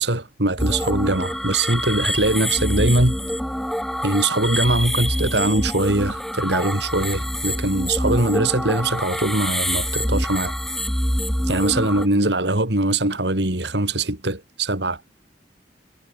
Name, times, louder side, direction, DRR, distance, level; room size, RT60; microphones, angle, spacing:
voice 1, 0.0-3.2 4.0-10.5 11.5-15.0, right 2 dB, 75° right, 4.0 m, -22 dB
sound 1, 0.6-12.1, equal, ahead, 1.9 m, -26 dB
head